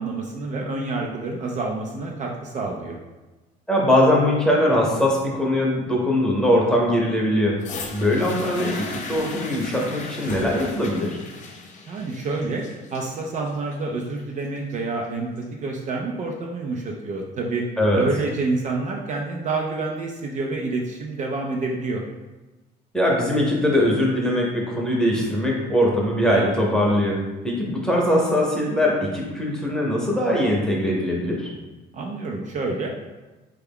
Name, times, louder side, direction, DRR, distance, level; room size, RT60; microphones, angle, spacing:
voice 1, 0.0-3.0 11.9-12.6 12.9-17.6 17.9-22.0 31.9-32.9, right 3 dB, 45° right, 0 dB, 0.5 m, -28 dB
voice 2, 3.7-7.6 7.9-11.2 17.8-18.0 22.9-31.5, left 1 dB, 5° left, -3 dB, 0.8 m, -21 dB
sound 1, 7.6-15.6 16.4-16.5, left 3 dB, 45° left, 0.5 m, -37 dB
3.3 x 2.3 x 3.5 m, 1.1 s
cardioid pair, 110°, 17 cm